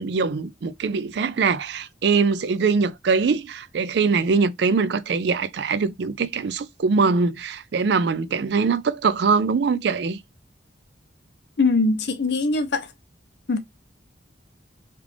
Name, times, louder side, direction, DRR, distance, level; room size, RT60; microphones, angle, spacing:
voice 1, 0.0-10.2, right 5 dB, 60° right, 0.4 m, -22 dB
voice 2, 11.6-12.9 13.5-13.6, left 3 dB, 60° left, 0.6 m, -21 dB
3.4 x 2.5 x 3.0 m
head